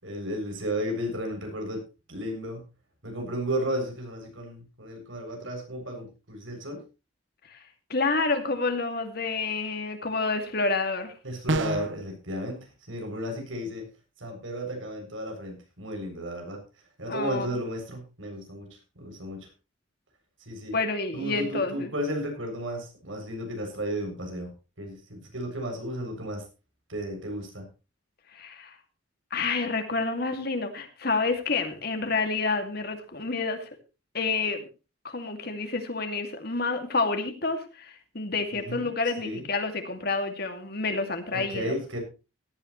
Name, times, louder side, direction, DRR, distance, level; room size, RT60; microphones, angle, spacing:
voice 1, 0.0-1.8 2.1-2.6 3.0-6.8 11.2-13.9 14.2-16.6 17.0-19.5 20.5-20.8 21.1-24.5 24.8-26.4 26.9-27.7 38.5-38.8 39.2-39.4 41.3-42.0, equal, 85° right, 2 dB, 7.5 m, -33 dB
voice 2, 7.9-11.1 17.1-17.5 20.7-21.9 28.3-28.8 29.3-33.7 34.1-34.6 35.0-41.8, left 3 dB, 55° left, 6 dB, 2.4 m, -29 dB
sound 1, 11.5-12.0, right 2 dB, 70° right, 1.0 m, -27 dB
17.0 x 13.0 x 3.2 m, 0.31 s
head